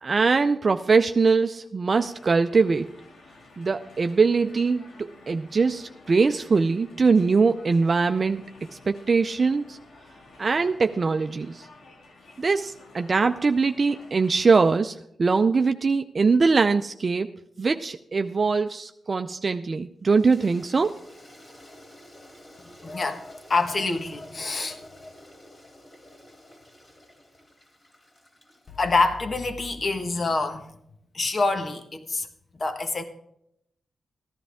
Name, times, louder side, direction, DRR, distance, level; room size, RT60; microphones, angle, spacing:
voice 1, 0.0-2.9 3.6-8.4 8.9-9.8 10.4-11.7 12.4-17.3 17.6-20.9, right 4 dB, 50° right, 0.5 m, -22 dB
sound 1, 1.9-14.7, left 2 dB, 80° left, 2.0 m, -52 dB
Toilet flush, 20.1-29.4, left 1 dB, 35° left, 3.1 m, -51 dB
voice 2, 22.8-25.1 28.7-30.7 31.1-32.3 32.6-33.0, left 3 dB, 50° left, 1.4 m, -26 dB
14.5 x 11.0 x 3.6 m
cardioid pair, 50°, 0 cm